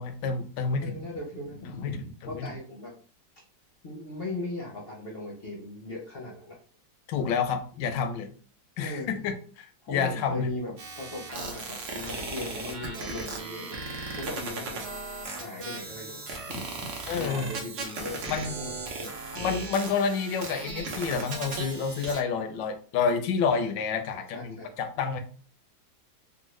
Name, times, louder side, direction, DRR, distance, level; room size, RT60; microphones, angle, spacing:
voice 1, 0.0-1.0 1.8-2.0 2.2-2.5 7.1-8.3 8.8-10.6 17.1-17.5 18.3-18.6 19.3-25.2, left 5 dB, 80° left, 7 dB, 1.2 m, -29 dB
voice 2, 0.8-2.9 3.8-6.6 8.8-9.1 9.8-13.8 14.1-14.8 15.3-19.1 24.1-24.7, left 2 dB, 60° left, -3 dB, 0.6 m, -38 dB
sound 1, 10.8-22.2, right 3 dB, 60° right, 0.8 m, -37 dB
3.6 x 2.1 x 3.1 m, 0.42 s
omnidirectional pair, 2.0 m